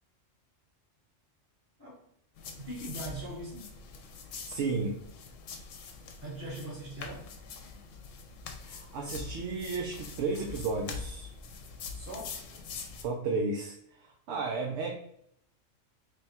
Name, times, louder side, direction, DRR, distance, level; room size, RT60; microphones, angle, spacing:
sound 1, 2.4-13.0, left 5 dB, 85° left, 1.0 m, -44 dB
voice 1, 2.6-3.7 6.2-7.3 11.9-12.6, right 1 dB, 45° right, -6 dB, 1.9 m, -41 dB
voice 2, 4.5-5.0 8.6-11.3 13.0-14.9, right 4 dB, 70° right, 2 dB, 0.8 m, -33 dB
3.4 x 2.2 x 4.2 m, 0.72 s
omnidirectional pair, 1.3 m